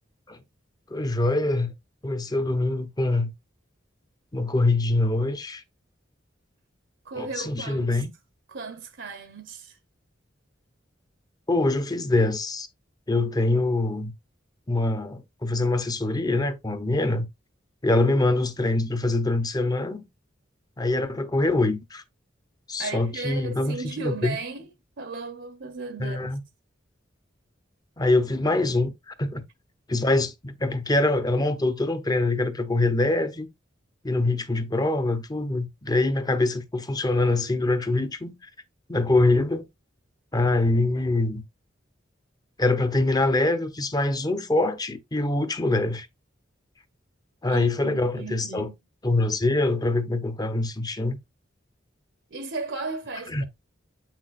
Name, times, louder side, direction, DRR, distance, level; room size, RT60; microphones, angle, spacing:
voice 1, 0.9-1.7 2.0-3.3 4.3-5.6 7.2-8.1 11.5-12.7 13.1-14.1 14.7-17.3 17.8-20.1 20.8-22.0 22.7-24.4 26.0-26.4 28.0-29.4 29.9-33.5 34.0-38.5 38.9-39.7 40.3-41.4 42.6-46.1 47.4-48.7 49.0-51.2 53.3-53.5, left 2 dB, 20° left, 0.9 m, -24 dB
voice 2, 7.0-8.0 8.5-9.8 22.8-24.7 25.0-26.4 47.5-48.8 52.3-53.5, right 3 dB, 65° right, 0.9 m, -35 dB
8.2 x 6.0 x 2.5 m
head